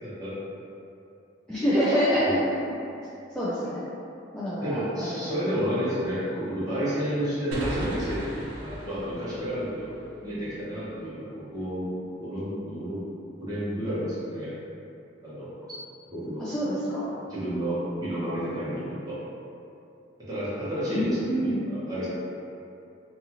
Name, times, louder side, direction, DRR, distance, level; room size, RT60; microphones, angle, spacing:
voice 1, 0.0-0.4 2.2-2.4 4.6-9.9 10.2-11.9 12.2-13.0 13.4-14.5 15.2-15.5 16.1-16.5 17.3-19.2 20.3-22.1, equal, 20° right, -12 dB, 0.9 m, -31 dB
voice 2, 1.5-2.4 3.3-3.8 4.3-5.4 16.4-17.1 20.9-21.6, equal, 5° left, -13 dB, 0.3 m, -26 dB
sound 1, 7.5-11.0, equal, 90° right, 0.5 m, -38 dB
2.7 x 2.4 x 2.8 m, 2.7 s
head